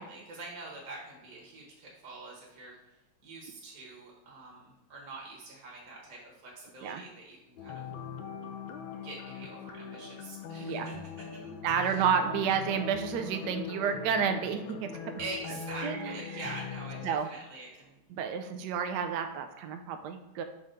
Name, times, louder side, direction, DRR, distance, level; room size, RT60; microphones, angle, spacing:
voice 1, 0.0-2.8 3.2-7.9 9.0-10.9 11.3-12.0 12.3-12.5 15.2-18.0, right 2 dB, 45° right, -3 dB, 1.4 m, -45 dB
sound 1, 7.6-17.2, left 6 dB, 75° left, 1.3 m, -41 dB
voice 2, 10.6-10.9 11.6-15.2 15.8-16.2 17.0-17.3 18.1-20.4, right 7 dB, 80° right, 6 dB, 0.9 m, -30 dB
5.5 x 3.5 x 5.0 m, 0.94 s
omnidirectional pair, 2.3 m